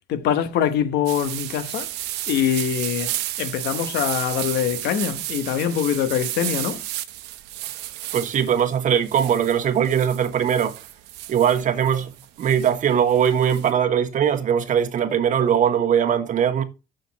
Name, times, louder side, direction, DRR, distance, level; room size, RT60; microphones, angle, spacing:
voice 1, 0.1-1.9 2.3-6.8, left 9 dB, 75° left, 1.1 m, -24 dB
sound 1, 1.1-13.7, right 15 dB, 90° right, 0.8 m, -33 dB
voice 2, 8.1-10.7 11.3-12.1 12.4-16.6, right 8 dB, 50° right, 1.2 m, -20 dB
6.5 x 6.3 x 4.1 m
cardioid pair, 110°, 17 cm